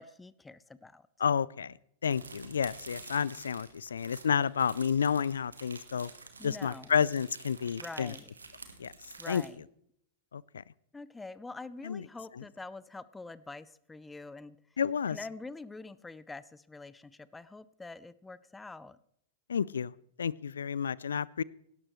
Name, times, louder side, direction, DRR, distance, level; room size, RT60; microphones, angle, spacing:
voice 1, 0.0-1.1 6.4-6.9 7.8-8.3 9.2-9.7 10.9-14.6 15.1-19.0, left 3 dB, 10° left, 17 dB, 0.6 m, -45 dB
voice 2, 1.2-1.7 2.0-6.1 6.4-8.1 8.8-8.9 9.3-9.4 10.3-10.4 11.8-12.0 12.4-12.5 14.8-15.2 19.5-19.9 20.2-21.4, left 7 dB, 75° left, 23 dB, 0.4 m, -30 dB
sound 1, 2.1-9.5, right 4 dB, 85° right, 1.6 m, -49 dB
17.5 x 12.0 x 3.2 m, 0.72 s
figure-of-eight pair, 100°, 0 cm